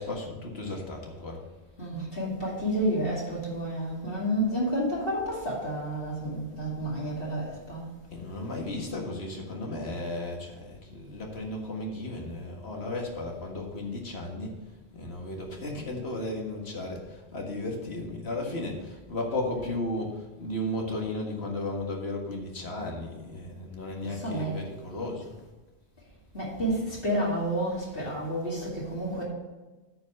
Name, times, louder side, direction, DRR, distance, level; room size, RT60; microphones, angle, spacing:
voice 1, 0.0-1.4 8.1-14.6 14.9-25.3, left 2 dB, 80° left, 1 dB, 2.0 m, -34 dB
voice 2, 1.8-7.9 23.9-24.7 26.3-29.2, right 1 dB, 60° left, -6 dB, 2.6 m, -30 dB
8.9 x 5.5 x 6.8 m, 1.2 s
omnidirectional pair, 1.1 m